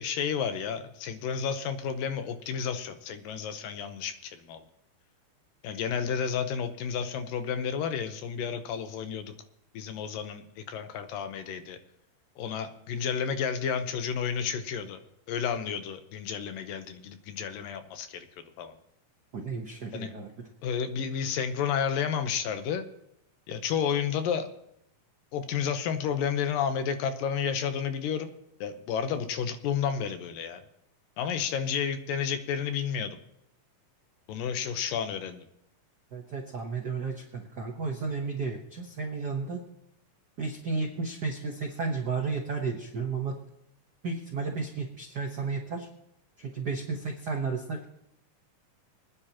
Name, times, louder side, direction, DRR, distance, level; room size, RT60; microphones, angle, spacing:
voice 1, 0.0-4.6 5.6-9.3 9.7-11.8 12.4-15.0 15.3-18.3 18.6-18.7 19.9-20.1 20.6-22.9 23.5-24.5 25.3-28.3 28.6-30.6 31.2-33.2 34.3-35.4, left 7 dB, 85° left, 8 dB, 2.7 m, -31 dB
voice 2, 19.3-20.5 36.1-39.6 40.4-43.4 44.0-45.9 46.4-47.9, right 4 dB, 85° right, 1 dB, 0.8 m, -33 dB
25.5 x 9.8 x 2.9 m, 0.80 s
omnidirectional pair, 3.9 m